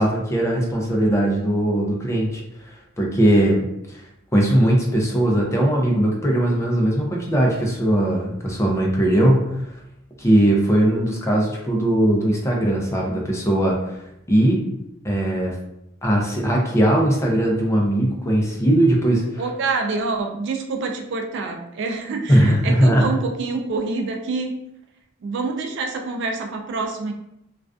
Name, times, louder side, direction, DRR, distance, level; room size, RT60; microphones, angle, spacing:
voice 1, 0.0-2.4 2.7-4.0 4.3-9.5 10.2-14.0 14.3-14.6 15.0-15.5 16.0-19.2 22.3-23.1, right 1 dB, 15° left, -1 dB, 0.4 m, -19 dB
voice 2, 19.4-24.6 25.2-27.1, right 3 dB, 60° right, 3 dB, 0.3 m, -26 dB
2.3 x 2.3 x 2.3 m, 0.82 s
head